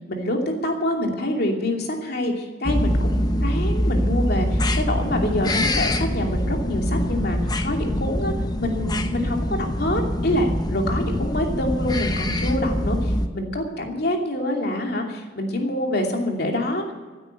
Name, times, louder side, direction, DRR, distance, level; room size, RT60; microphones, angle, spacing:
voice 1, 0.1-8.3 8.6-16.9, left 1 dB, 60° left, 1 dB, 2.8 m, -26 dB
sound 1, 2.6-13.3, left 1 dB, 20° left, 0.8 m, -24 dB
15.5 x 9.3 x 8.0 m, 1.3 s
head